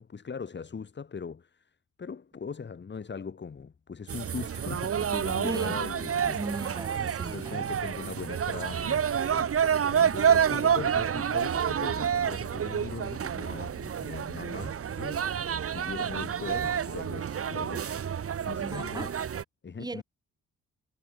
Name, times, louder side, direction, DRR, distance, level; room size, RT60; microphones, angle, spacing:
voice 1, 0.0-6.4 7.3-17.9 18.4-19.1 19.6-20.0, left 5 dB, 35° left, 2.0 m, -40 dB
sound 1, 4.1-19.4, right 8 dB, 45° right, 1.3 m, -29 dB
voice 2, 5.4-5.8 6.4-7.7 18.5-19.2 19.8-20.0, right 2 dB, 15° right, 1.0 m, -37 dB
cardioid pair, 80°, 30 cm